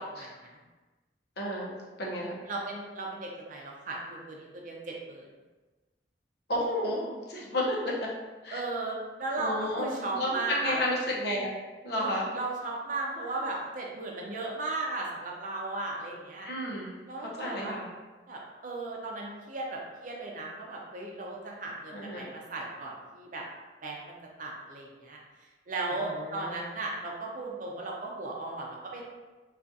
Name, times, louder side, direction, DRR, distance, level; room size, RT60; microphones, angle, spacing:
voice 1, 0.2-0.6 2.5-5.3 8.5-10.8 12.0-16.5 17.1-17.8 18.3-23.4 23.8-25.2 25.7-29.0, right 2 dB, 50° right, -2 dB, 0.6 m, -36 dB
voice 2, 1.4-2.4 6.5-8.1 8.4-8.6 9.4-11.5 11.8-12.3 16.4-16.9 17.4-17.9 21.9-22.3 25.9-26.7, left 1 dB, 65° left, -3 dB, 0.7 m, -32 dB
3.6 x 2.4 x 2.6 m, 1.3 s
head